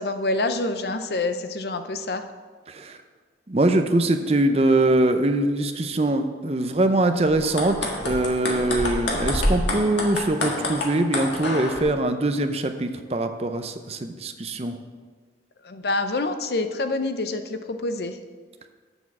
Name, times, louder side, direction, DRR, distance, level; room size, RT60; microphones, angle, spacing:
voice 1, 0.0-2.3 15.6-18.2, left 2 dB, 65° left, 8 dB, 0.6 m, -27 dB
voice 2, 3.5-7.8 8.0-14.8, right 1 dB, 35° right, 7 dB, 0.6 m, -22 dB
sound 1, 7.4-11.8, left 1 dB, 90° left, 1.6 m, -27 dB
6.9 x 6.3 x 7.1 m, 1.5 s
head